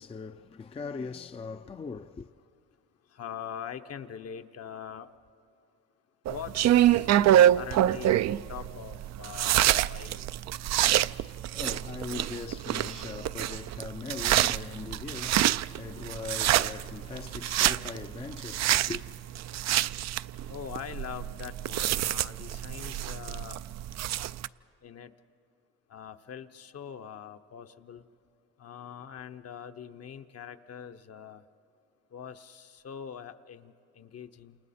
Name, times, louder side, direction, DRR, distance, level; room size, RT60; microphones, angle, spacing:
voice 1, 0.0-2.3 11.4-19.0, left 4 dB, 20° left, 0.4 m, -40 dB
voice 2, 3.1-5.2 6.3-10.3 20.5-23.6 24.8-25.1 25.9-28.0 28.6-31.4 32.1-34.6, left 8 dB, 55° left, 0.9 m, -43 dB
sound 1, 6.3-24.5, right 12 dB, 65° right, 0.4 m, -26 dB
28.5 x 28.5 x 4.3 m
cardioid pair, 90°, 30 cm